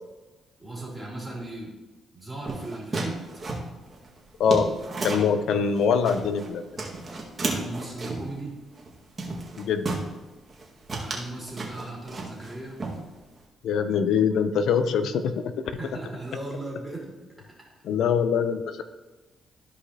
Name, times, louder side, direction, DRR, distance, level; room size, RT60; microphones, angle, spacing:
voice 1, 0.6-1.7 2.1-3.4 7.4-8.5 10.9-12.8 15.7-17.5, right 2 dB, 10° right, -4 dB, 2.9 m, -37 dB
sound 1, 2.4-5.4 5.8-6.5 6.8-8.3 8.8-8.9 9.2-10.1 10.5-10.6 10.9-12.5 12.8-13.4, right 3 dB, 35° right, 1.8 m, -32 dB
voice 2, 4.4-4.7 5.0-6.6 9.6-10.0 13.6-15.6 17.8-18.8, left 6 dB, 75° left, 9 dB, 0.6 m, -23 dB
13.5 x 5.0 x 2.9 m, 1.2 s
cardioid pair, 90°, 0 cm